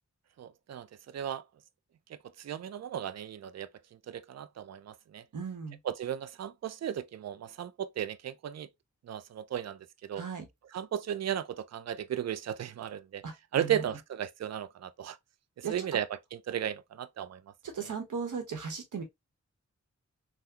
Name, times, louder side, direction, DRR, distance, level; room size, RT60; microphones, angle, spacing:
voice 1, 0.4-1.4 2.1-3.7 4.1-5.2 5.8-8.7 9.0-10.2 10.7-13.2 13.5-15.2 15.6-17.4 17.8-17.9, right 10 dB, 60° right, 0.4 m, -35 dB
voice 2, 5.3-5.8 10.2-10.5 13.2-13.8 15.6-15.7 17.6-19.0, right 6 dB, 80° right, 1.1 m, -37 dB
3.6 x 2.2 x 2.7 m
cardioid pair, 45°, 30 cm